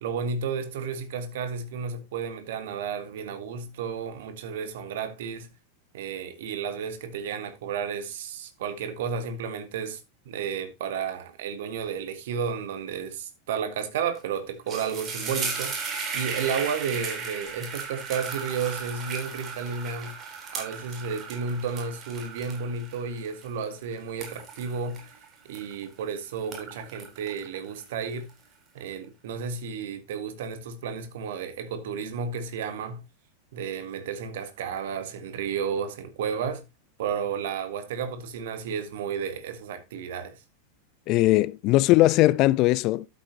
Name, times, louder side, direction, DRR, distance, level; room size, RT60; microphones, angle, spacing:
voice 1, 0.0-5.5 5.9-10.0 10.3-15.7 16.1-20.2 20.5-25.1 25.5-28.3 28.7-33.0 33.5-36.6 37.0-40.4, right 6 dB, 55° right, 1.9 m, -32 dB
sound 1, 14.0-14.2 14.5-26.0 26.4-28.3, right 5 dB, 25° right, 3.9 m, -36 dB
voice 2, 41.1-43.1, left 17 dB, 40° left, 0.5 m, -20 dB
12.0 x 8.0 x 2.9 m
figure-of-eight pair, 90°, 0 cm